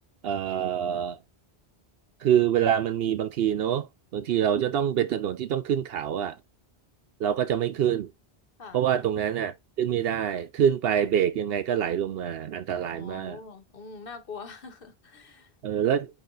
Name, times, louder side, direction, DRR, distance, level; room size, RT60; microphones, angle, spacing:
voice 1, 0.2-1.2 2.2-6.4 7.2-8.1 8.7-13.4 15.6-16.1, right 9 dB, 70° right, 0.8 m, -26 dB
voice 2, 8.6-8.9 12.8-15.5, left 5 dB, 60° left, 1.4 m, -44 dB
8.6 x 2.9 x 3.9 m
omnidirectional pair, 1.1 m